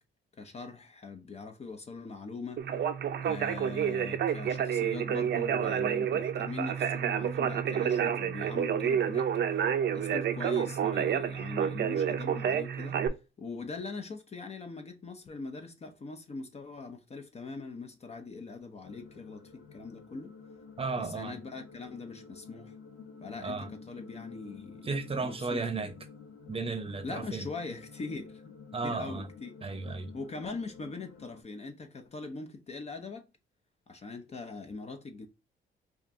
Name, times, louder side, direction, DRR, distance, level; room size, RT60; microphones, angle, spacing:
voice 1, 0.3-2.7 3.2-9.6 9.9-13.0 13.4-20.4 21.0-22.7 23.2-24.9 25.2-25.9 27.0-28.5 28.8-29.5 30.1-33.3 33.9-35.3, left 3 dB, 30° left, 0.7 m, -42 dB
Conversation, 2.6-13.1, right 8 dB, 60° right, 0.6 m, -29 dB
sound 1, 18.8-31.4, left 5 dB, 75° left, 1.1 m, -50 dB
voice 2, 20.8-21.4 23.4-23.7 24.8-25.9 26.5-27.5 28.7-29.3 29.6-30.1, right 4 dB, 30° right, 0.8 m, -34 dB
5.1 x 2.5 x 2.5 m
cardioid pair, 90°, 20 cm